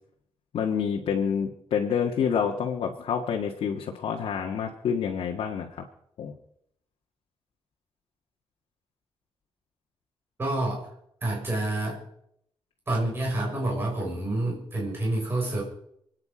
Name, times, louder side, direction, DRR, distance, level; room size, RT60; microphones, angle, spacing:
voice 1, 0.5-5.8 6.2-6.3, left 7 dB, 80° left, 0 dB, 1.8 m, -28 dB
voice 2, 10.4-10.9 11.2-12.0 12.9-15.6, right 2 dB, 25° right, -3 dB, 6.1 m, -28 dB
28.5 x 9.7 x 5.1 m, 0.71 s
wide cardioid pair, 170°, 9 cm